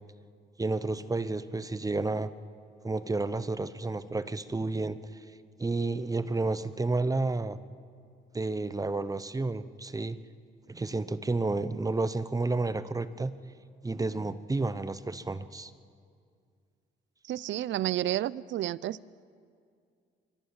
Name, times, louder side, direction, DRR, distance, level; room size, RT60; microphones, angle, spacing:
voice 1, 0.6-2.3 2.8-5.0 5.6-7.6 8.3-10.2 10.7-13.3 13.8-15.7, right 3 dB, 15° right, 14 dB, 0.8 m, -31 dB
voice 2, 17.3-19.0, right 13 dB, 70° right, 21 dB, 0.5 m, -30 dB
23.0 x 22.0 x 7.3 m, 2.3 s
cardioid pair, 90°, 20 cm